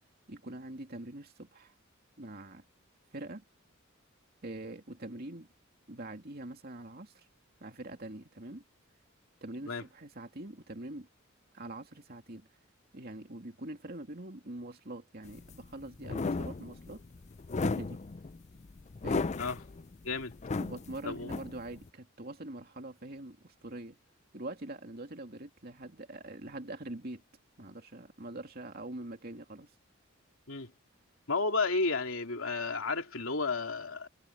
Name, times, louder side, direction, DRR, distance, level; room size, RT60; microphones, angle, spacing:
voice 1, 0.3-1.7 2.2-2.6 3.1-3.4 4.4-5.5 5.9-7.2 7.6-8.6 9.4-11.1 11.5-12.5 12.9-17.0 17.5-18.0 19.0-19.3 20.6-24.0 24.3-27.2 27.6-29.7, right 1 dB, 45° right, 2.7 m, -44 dB
sound 1, 15.2-21.9, left 3 dB, 35° left, 0.4 m, -35 dB
voice 2, 31.3-34.1, left 3 dB, 70° left, 3.0 m, -32 dB
head